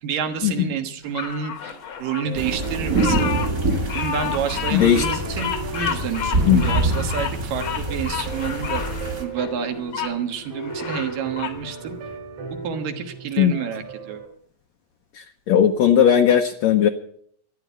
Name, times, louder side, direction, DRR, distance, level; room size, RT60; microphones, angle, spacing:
voice 1, 0.0-3.3 3.9-8.8 9.2-12.0 12.6-14.2, right 7 dB, 75° right, 6 dB, 3.0 m, -29 dB
Bird vocalization bird call bird song, 1.1-10.1 10.6-11.6, left 8 dB, 55° left, 1.5 m, -31 dB
sound 1, 2.3-9.2, right 2 dB, 35° right, 1.6 m, -26 dB
sound 2, 2.3-14.3, right 3 dB, 55° right, 3.3 m, -36 dB
voice 2, 4.7-5.1 6.5-6.7 13.4-13.6 15.1-16.9, left 9 dB, 75° left, 5 dB, 1.6 m, -17 dB
14.0 x 10.5 x 8.1 m, 0.64 s
omnidirectional pair, 4.0 m